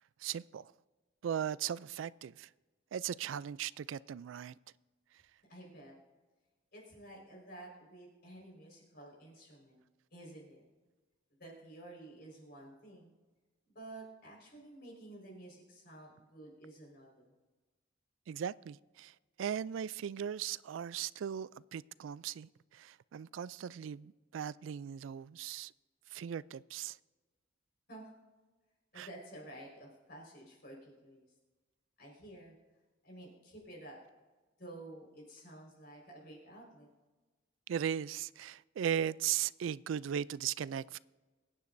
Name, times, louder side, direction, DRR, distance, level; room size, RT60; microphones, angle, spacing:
voice 1, 0.2-0.7 1.2-2.5 2.9-4.5 18.3-25.7 26.1-27.0 29.0-29.1 37.7-41.0, right 9 dB, 80° right, 0.3 m, -38 dB
voice 2, 5.5-5.9 6.7-9.8 10.1-10.6 11.4-13.1 13.7-17.3 27.9-28.1 28.9-31.2 32.0-32.5 33.0-34.0 34.6-36.9, right 1 dB, 55° left, 4.6 m, -51 dB
23.0 x 9.9 x 2.6 m
head